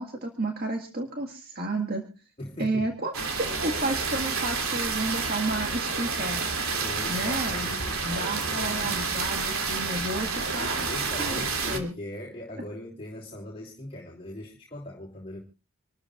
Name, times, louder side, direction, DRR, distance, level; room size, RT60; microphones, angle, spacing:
voice 1, 0.0-2.0 2.6-3.1 3.4-6.4 7.1-7.7 8.0-10.9 11.2-11.9, right 2 dB, 45° right, 2 dB, 1.9 m, -31 dB
voice 2, 2.4-2.9 6.8-9.0 10.6-15.4, left 1 dB, 25° left, -4 dB, 3.1 m, -40 dB
sound 1, 3.1-11.8, right 4 dB, 75° right, 2.9 m, -29 dB
27.0 x 13.5 x 2.5 m, 0.34 s
head